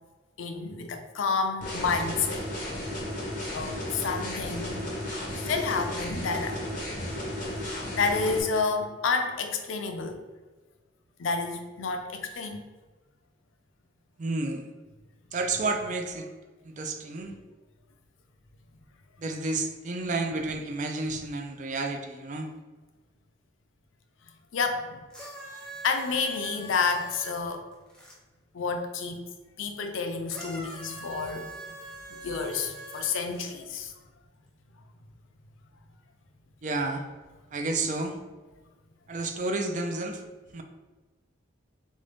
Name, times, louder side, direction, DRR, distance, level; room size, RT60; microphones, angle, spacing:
voice 1, 0.4-2.5 3.5-4.9 5.3-6.6 8.0-10.2 11.2-12.6 24.5-25.0 25.8-27.6 28.5-29.2 29.6-31.5 32.1-33.9, left 4 dB, 85° left, 6 dB, 0.5 m, -29 dB
sound 1, 1.6-8.4, left 1 dB, 45° left, 1.0 m, -34 dB
voice 2, 14.2-14.7 15.3-16.3 16.6-17.4 19.2-22.5 36.6-37.1 37.5-38.2 39.1-40.2 40.5-40.6, right 3 dB, 40° right, 5 dB, 0.4 m, -31 dB
sound 2, 25.1-28.2 30.3-33.5 34.5-34.6, right 2 dB, 5° left, 0.6 m, -43 dB
3.6 x 2.6 x 3.4 m, 1.2 s
head